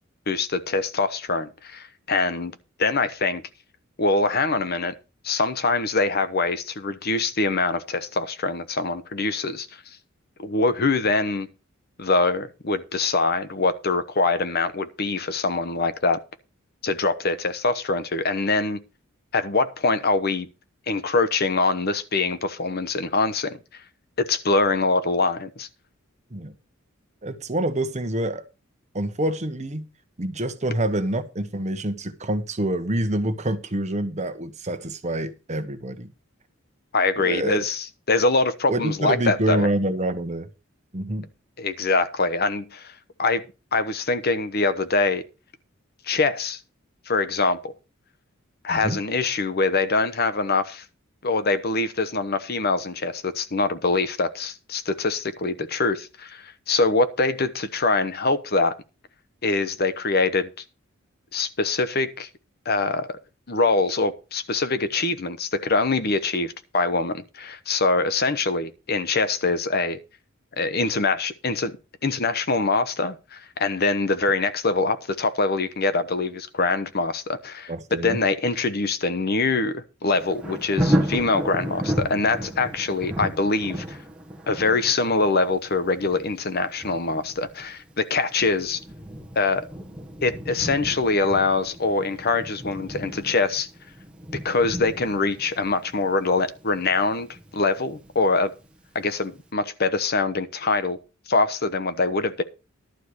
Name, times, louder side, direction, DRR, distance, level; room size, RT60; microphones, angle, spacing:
voice 1, 0.3-2.5 2.8-3.4 4.0-4.9 5.2-9.7 10.4-11.5 12.0-16.2 16.8-18.8 19.3-20.5 20.9-23.6 24.2-25.7 36.9-39.7 41.6-42.9 43.2-43.4 43.7-45.2 46.1-46.6 47.1-47.7 48.6-50.8 51.2-58.7 59.4-60.5 61.3-62.3 62.6-63.2 63.5-70.0 70.6-71.8 72.0-84.0 84.5-88.8 89.3-89.6 90.2-93.7 94.4-98.5 98.9-101.0 101.3-102.4, left 3 dB, 50° left, 1.0 m, -24 dB
voice 2, 27.2-28.4 28.9-29.8 30.2-36.1 37.2-37.6 38.7-40.5 40.9-41.3 48.7-49.0 77.7-78.2, right 1 dB, 35° right, 1.1 m, -26 dB
Thunder, 80.1-98.9 99.4-99.5, equal, 5° right, 1.3 m, -33 dB
12.0 x 4.6 x 8.2 m
head